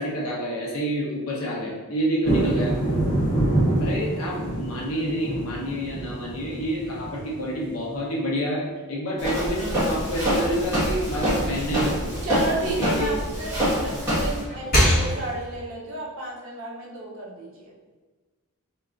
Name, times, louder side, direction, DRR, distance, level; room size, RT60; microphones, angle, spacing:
voice 1, 0.0-2.7 3.8-8.6 8.9-12.1 12.8-13.1, equal, 70° left, -4 dB, 1.0 m, -28 dB
sound 1, 2.2-7.7, right 1 dB, 15° left, 1.3 m, -26 dB
Walk footsteps, 9.2-14.4, equal, 15° right, 1.5 m, -26 dB
sound 2, 10.3-13.4 13.8-15.6, equal, 45° left, 1.2 m, -27 dB
voice 2, 12.2-17.7, right 1 dB, 65° right, -3 dB, 0.8 m, -32 dB
4.6 x 2.9 x 2.5 m, 1.3 s
head